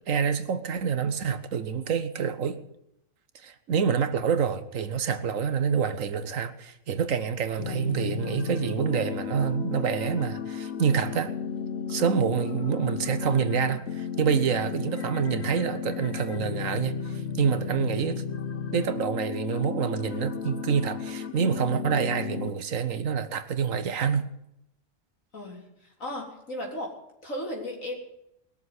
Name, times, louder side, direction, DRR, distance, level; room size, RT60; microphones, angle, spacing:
voice 1, 0.1-2.6 3.4-11.3 11.9-18.2 18.7-24.3, right 7 dB, 75° right, 1.4 m, -27 dB
sound 1, 7.6-22.5, left 7 dB, 60° left, 1.1 m, -34 dB
voice 2, 25.3-26.9 27.2-27.9, left 1 dB, 80° left, 4.1 m, -35 dB
20.5 x 6.8 x 9.6 m
omnidirectional pair, 1.4 m